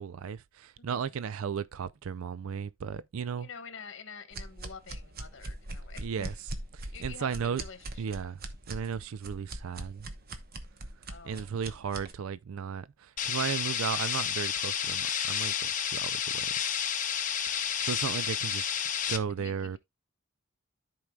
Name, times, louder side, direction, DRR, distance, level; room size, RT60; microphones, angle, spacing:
voice 1, 0.0-3.5 6.0-6.3 6.8-7.6 8.0-8.4 8.7-10.1 11.2-16.5 17.5-18.7 19.1-19.8, right 7 dB, 90° right, 0.4 m, -35 dB
voice 2, 0.8-1.2 3.4-6.3 6.9-8.2 11.1-11.5 19.4-19.8, left 5 dB, 60° left, 1.2 m, -48 dB
sound 1, 4.3-12.1, right 2 dB, 45° right, 1.0 m, -41 dB
sound 2, 13.2-19.2, left 8 dB, 40° left, 0.9 m, -31 dB
13.5 x 4.7 x 2.3 m
head